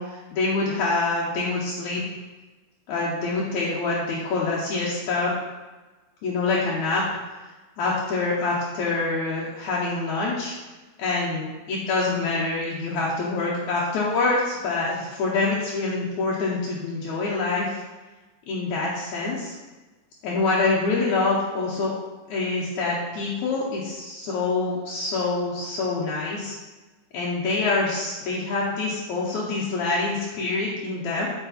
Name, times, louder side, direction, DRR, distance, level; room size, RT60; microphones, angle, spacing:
voice 1, 0.0-2.0 2.9-5.3 6.2-7.0 7.8-10.5 11.0-17.8 18.5-19.5 20.2-21.9 22.3-26.6 27.1-31.3, left 3 dB, 70° left, -5 dB, 2.3 m, -26 dB
8.1 x 5.2 x 4.3 m, 1.2 s
omnidirectional pair, 3.6 m